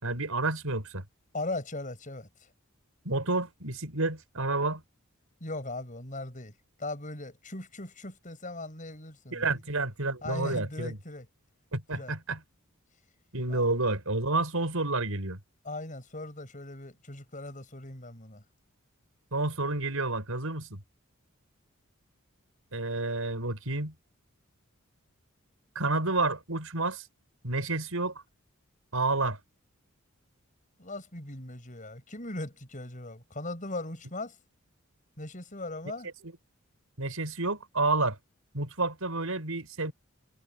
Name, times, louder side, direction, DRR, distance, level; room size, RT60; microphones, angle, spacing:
voice 1, 0.0-1.0 3.0-4.8 9.3-11.0 11.7-12.4 13.3-15.4 19.3-20.8 22.7-23.9 25.7-27.0 27.4-28.1 28.9-29.4 36.2-36.3 37.0-38.2 38.5-39.9, right 2 dB, 80° right, 4.8 m, -30 dB
voice 2, 1.3-2.3 5.4-6.5 6.8-9.5 10.2-11.2 11.9-12.1 13.5-13.7 15.6-18.4 30.8-34.4 35.2-36.1, left 2 dB, 35° left, 6.7 m, -39 dB
head